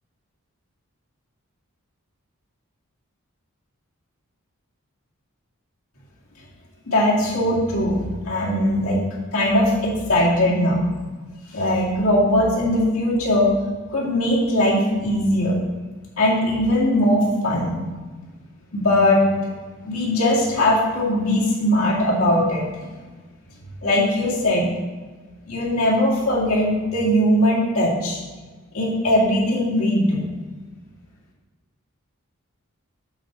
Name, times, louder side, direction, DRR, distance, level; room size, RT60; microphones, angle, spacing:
voice 1, 6.9-9.0 9.3-10.9 11.5-13.5 13.9-15.6 16.2-17.7 18.7-19.2 19.8-22.6 23.8-24.7 25.5-28.2 28.7-30.2, left 1 dB, 75° left, -5 dB, 2.2 m, -20 dB
7.9 x 4.3 x 5.1 m, 1.3 s
head